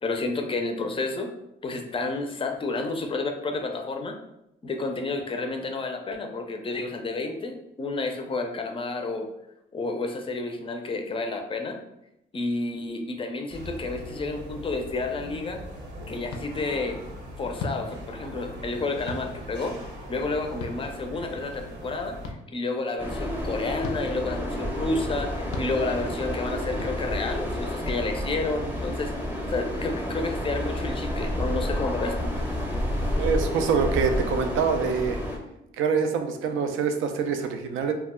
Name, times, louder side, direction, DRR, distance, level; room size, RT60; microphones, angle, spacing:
voice 1, 0.0-1.3 1.6-4.2 4.6-9.3 9.7-11.8 12.3-15.6 16.1-17.0 17.4-19.8 20.1-29.1 29.5-32.3, left 3 dB, 25° left, 5 dB, 0.4 m, -30 dB
sound 1, 13.5-22.3, equal, 60° right, 0.7 m, -41 dB
sound 2, 16.3-16.4 17.6-17.8 19.1-19.2 20.6-20.8 22.2-22.4 23.8-24.0 25.5-25.7 26.8-26.9 27.9-28.0, left 3 dB, 90° left, 0.4 m, -35 dB
sound 3, 23.0-35.4, left 1 dB, 10° right, 0.7 m, -30 dB
voice 2, 33.1-35.2 35.8-37.9, right 6 dB, 85° right, 6 dB, 0.4 m, -25 dB
2.2 x 2.0 x 3.5 m, 0.85 s
cardioid pair, 90°, 20 cm